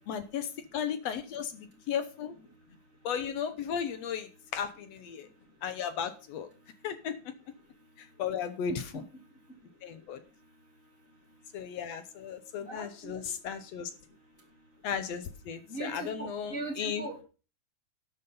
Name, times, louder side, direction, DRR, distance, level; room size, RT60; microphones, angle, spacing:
voice 1, 0.1-2.3 3.0-5.3 5.6-6.5 6.8-7.3 8.0-9.0 9.8-10.2 11.5-13.9 14.8-17.0, left 7 dB, 65° left, 11 dB, 1.9 m, -35 dB
voice 2, 12.7-13.3 15.7-17.2, right 2 dB, 25° left, -1 dB, 2.5 m, -39 dB
12.5 x 7.9 x 5.5 m, 0.35 s
omnidirectional pair, 3.5 m